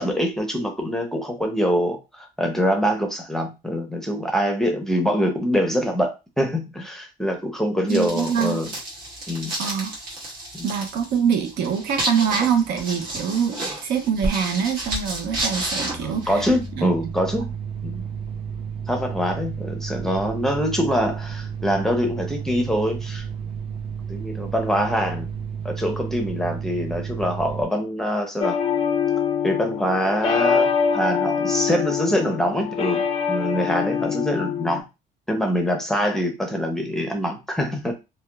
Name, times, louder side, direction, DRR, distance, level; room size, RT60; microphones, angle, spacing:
voice 1, 0.0-8.7 9.3-9.5 10.5-10.7 16.0-17.5 17.8-18.0 18.9-23.2 24.1-25.3 25.6-28.6 29.4-34.8 35.3-37.9, equal, 5° left, 2 dB, 0.6 m, -24 dB
sound 1, 7.9-16.7, right 1 dB, 60° right, 1.2 m, -31 dB
voice 2, 7.9-8.6 9.6-9.9 10.6-16.5 16.8-17.1, right 7 dB, 80° right, 5 dB, 0.6 m, -24 dB
sound 2, 14.2-14.3 14.6-27.7, right 6 dB, 35° right, 0.9 m, -32 dB
sound 3, 28.4-34.8, left 7 dB, 35° left, 0.4 m, -24 dB
2.7 x 2.2 x 2.3 m, 0.25 s
cardioid pair, 110°, 17 cm